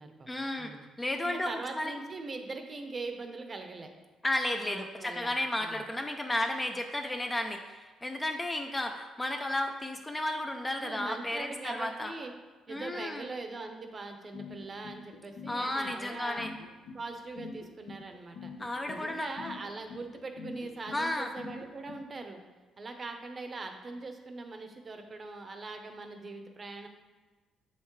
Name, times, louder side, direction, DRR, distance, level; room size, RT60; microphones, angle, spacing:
voice 1, 0.3-0.7 1.0-2.0 4.2-12.1 12.7-13.3 15.5-16.5 18.6-19.6 20.9-21.3, left 1 dB, 15° left, 4 dB, 0.4 m, -33 dB
voice 2, 1.2-3.9 4.6-5.8 10.8-12.3 12.7-16.4 16.9-18.5 18.9-22.4 22.8-26.9, right 3 dB, 30° right, 5 dB, 0.7 m, -41 dB
sound 1, 14.3-22.0, left 4 dB, 65° left, 0.7 m, -44 dB
7.3 x 5.7 x 3.1 m, 1.3 s
cardioid pair, 125°, 0 cm